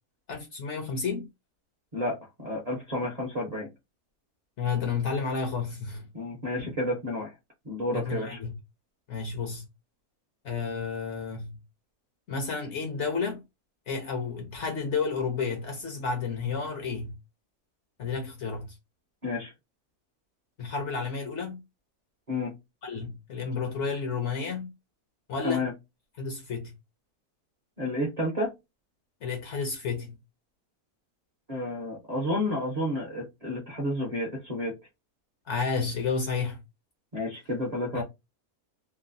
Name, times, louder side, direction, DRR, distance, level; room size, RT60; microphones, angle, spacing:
voice 1, 0.3-1.3 4.6-6.1 6.6-6.8 7.9-8.5 9.1-9.7 10.4-11.6 12.3-13.4 13.9-17.2 18.0-18.7 20.6-21.6 22.8-24.7 25.3-25.7 26.2-26.7 29.2-30.2 35.5-36.6 37.9-38.0, left 5 dB, 60° left, 0.8 m, -31 dB
voice 2, 1.9-3.7 6.1-7.3 7.7-8.4 19.2-19.5 22.3-22.5 25.4-25.7 27.8-28.5 31.5-34.7 37.1-38.0, left 1 dB, 35° right, 0.7 m, -31 dB
3.0 x 2.1 x 2.5 m
omnidirectional pair, 1.6 m